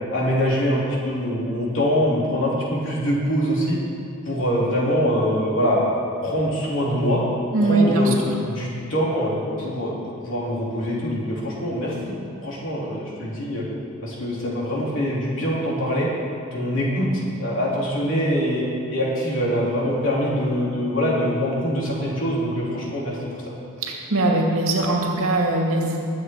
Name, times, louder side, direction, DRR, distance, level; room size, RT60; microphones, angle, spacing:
voice 1, 0.1-3.8 4.2-5.9 6.2-7.2 7.6-8.1 8.4-10.0 10.2-12.1 12.4-13.6 14.0-16.1 16.5-17.1 17.4-18.6 18.9-23.2, equal, 65° left, -4 dB, 3.3 m, -23 dB
voice 2, 7.5-8.1 23.8-26.1, right 2 dB, 85° right, 0 dB, 2.2 m, -21 dB
21.0 x 7.9 x 4.7 m, 2.5 s
head